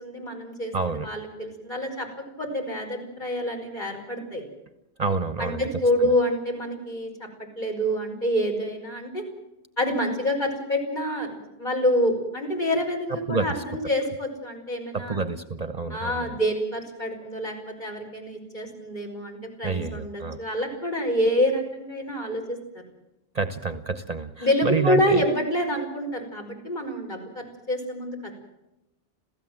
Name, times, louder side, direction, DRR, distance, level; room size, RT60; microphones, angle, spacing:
voice 1, 0.0-4.5 5.4-7.3 7.6-9.2 9.8-15.2 15.9-22.4 24.4-28.2, equal, 50° left, 1 dB, 5.6 m, -27 dB
voice 2, 0.7-1.1 5.0-5.7 6.0-6.1 13.3-13.6 14.9-16.4 19.6-20.4 23.3-25.2, right 4 dB, 40° right, 10 dB, 1.0 m, -28 dB
27.0 x 16.0 x 7.6 m, 0.91 s
omnidirectional pair, 1.0 m